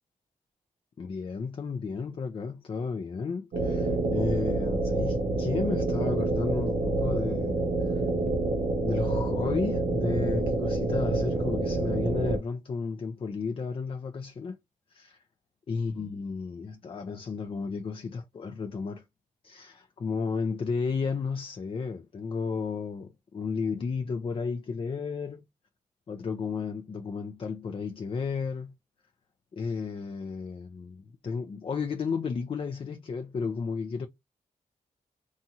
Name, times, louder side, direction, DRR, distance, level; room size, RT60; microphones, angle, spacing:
voice 1, 1.0-8.0 8.8-14.6 14.9-15.2 15.7-19.1 19.4-25.4 26.1-28.7 29.5-34.1, left 5 dB, 40° left, 0.4 m, -33 dB
sound 1, 3.5-12.4, right 2 dB, 80° right, 0.6 m, -27 dB
2.7 x 2.3 x 2.7 m
cardioid pair, 60°, 15 cm